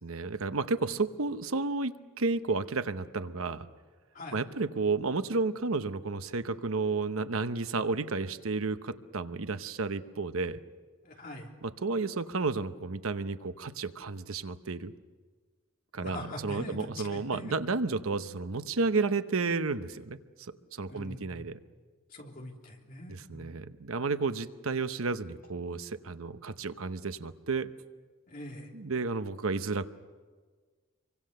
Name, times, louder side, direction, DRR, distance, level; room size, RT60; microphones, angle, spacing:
voice 1, 0.0-3.7 4.3-10.6 11.6-14.9 15.9-20.2 20.5-21.6 23.1-27.7 28.7-29.9, right 3 dB, 85° right, 11 dB, 0.9 m, -32 dB
voice 2, 11.0-11.5 16.0-17.5 20.9-21.5 22.1-23.6 28.3-28.7, left 1 dB, 45° left, 0 dB, 3.3 m, -43 dB
26.5 x 24.0 x 6.7 m, 1.5 s
head